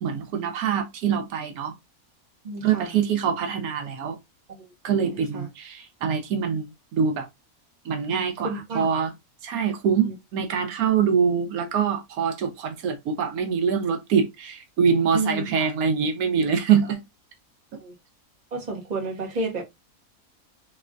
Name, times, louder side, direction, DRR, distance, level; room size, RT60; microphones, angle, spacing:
voice 1, 0.0-1.7 2.6-4.2 4.8-7.3 7.8-9.1 9.4-17.0 17.7-17.8, right 7 dB, 80° right, 1.1 m, -24 dB
voice 2, 2.4-2.9 4.6-4.7 5.0-5.4 8.4-8.9 15.1-15.7 17.8-17.9 18.5-19.6, right 2 dB, 30° right, 1.1 m, -31 dB
3.3 x 3.0 x 2.4 m
omnidirectional pair, 1.5 m